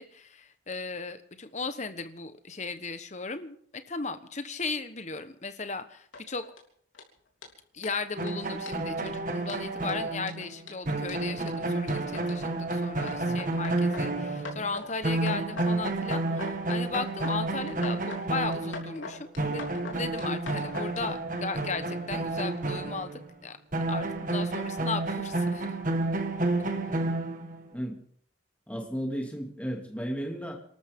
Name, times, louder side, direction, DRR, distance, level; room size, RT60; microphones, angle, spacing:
voice 1, 0.0-6.4 7.7-23.6 23.9-25.8, left 4 dB, 35° left, 10 dB, 1.1 m, -36 dB
sound 1, 6.1-6.6 6.9-7.0 7.4-7.5 7.8-7.9 8.3-8.4 8.7-9.1 9.5-12.7 13.1-14.0 14.4-14.9 15.2-15.7 16.0-16.5 16.8-17.4 17.7-18.2 18.5-21.0, left 3 dB, 85° left, 3.4 m, -42 dB
sound 2, 8.2-14.8 15.0-23.3 23.7-27.7, right 2 dB, 40° right, 1.6 m, -30 dB
voice 2, 13.1-13.4 27.7-28.0 28.7-30.6, equal, 5° left, 1 dB, 2.6 m, -34 dB
28.0 x 13.0 x 3.7 m, 0.62 s
head